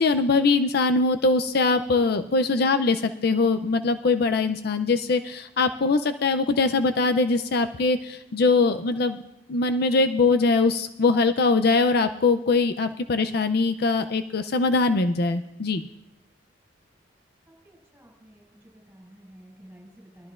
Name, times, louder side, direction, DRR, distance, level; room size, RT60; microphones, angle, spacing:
voice 1, 0.0-9.2 9.5-15.9, left 3 dB, 55° left, 9 dB, 0.5 m, -22 dB
voice 2, 17.5-20.3, right 1 dB, 10° right, -3 dB, 5.9 m, -51 dB
21.5 x 13.0 x 2.5 m, 0.85 s
head